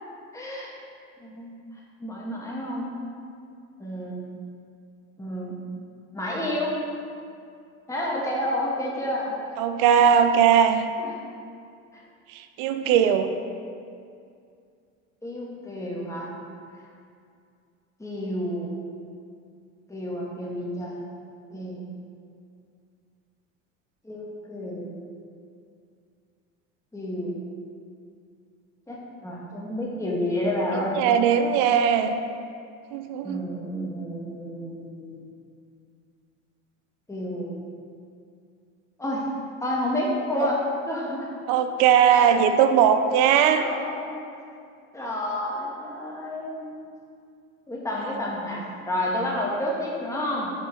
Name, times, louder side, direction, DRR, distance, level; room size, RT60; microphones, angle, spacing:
voice 1, 0.3-0.8 1.2-1.5 2.0-2.9 3.8-4.3 5.2-5.6 6.1-6.8 7.9-9.6 10.1-10.2 11.0-11.1 11.9-12.0 15.2-16.3 18.0-18.7 19.9-21.0 21.5-21.9 24.0-24.9 26.9-27.4 28.9-31.0 33.2-35.3 37.1-37.6 39.0-39.3 39.6-41.3 42.1-42.3 43.5-44.2 44.9-46.7 47.7-50.5, left 1 dB, 10° left, -4 dB, 1.4 m, -30 dB
voice 2, 9.6-10.8 12.3-13.3 30.7-32.2 32.9-33.4 41.5-43.6, right 8 dB, 60° right, 8 dB, 0.6 m, -19 dB
5.4 x 4.5 x 4.5 m, 2.4 s
hypercardioid pair, 80°, 39 cm